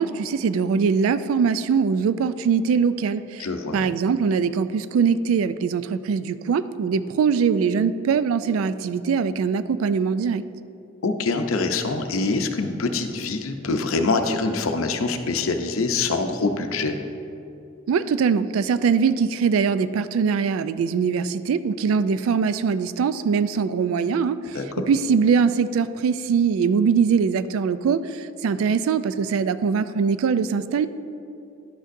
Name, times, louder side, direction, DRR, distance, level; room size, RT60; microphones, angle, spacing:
voice 1, 0.0-3.5 3.7-10.4 17.9-24.4 24.9-30.9, right 6 dB, 85° right, 14 dB, 0.3 m, -22 dB
voice 2, 3.4-3.8 11.0-17.0 24.5-24.9, left 3 dB, 90° left, 6 dB, 0.6 m, -24 dB
11.0 x 6.4 x 2.6 m, 2.7 s
head